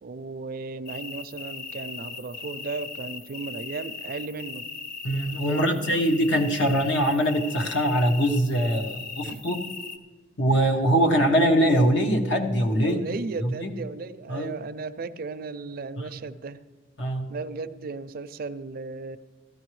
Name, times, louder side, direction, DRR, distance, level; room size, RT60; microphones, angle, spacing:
voice 1, 0.0-4.7 5.5-6.0 9.2-9.4 12.8-16.6 17.3-19.2, right 4 dB, 50° right, 13 dB, 0.4 m, -35 dB
sound 1, 0.9-10.0, left 4 dB, 55° left, 0.7 m, -38 dB
voice 2, 5.0-9.6 10.4-13.0 13.4-13.7 14.3-14.5 16.0-16.1 17.0-17.3, equal, 80° left, 2 dB, 1.2 m, -23 dB
16.0 x 13.5 x 3.2 m, 1.3 s
head